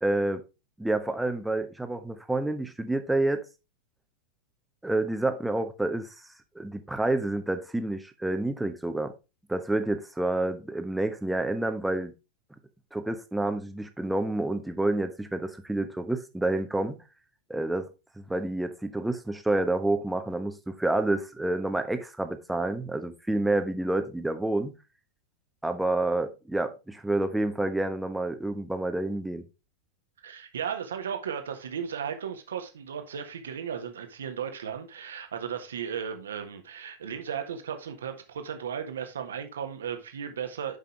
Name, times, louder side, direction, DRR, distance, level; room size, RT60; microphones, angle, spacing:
voice 1, 0.0-0.4 0.8-3.4 4.8-6.1 6.5-9.1 9.5-12.1 12.9-17.0 17.5-17.9 18.2-24.8 25.6-29.4, right 2 dB, 5° right, 1.1 m, -28 dB
voice 2, 30.2-40.8, right 7 dB, 65° right, 1.5 m, -35 dB
10.0 x 5.5 x 3.3 m
figure-of-eight pair, 90°, 0 cm